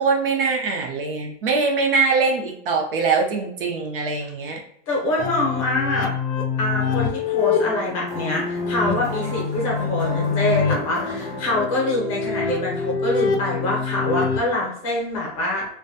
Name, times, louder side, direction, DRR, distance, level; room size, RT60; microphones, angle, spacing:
voice 1, 0.0-4.6, right 4 dB, 55° right, 1 dB, 0.5 m, -22 dB
voice 2, 4.9-6.1 6.6-15.7, left 2 dB, 30° left, -3 dB, 0.7 m, -25 dB
sound 1, 5.2-14.4, left 5 dB, 75° left, 0.6 m, -25 dB
sound 2, 7.4-11.8, equal, ahead, 0.3 m, -37 dB
2.5 x 2.2 x 2.6 m, 0.68 s
supercardioid pair, 175°, 35 cm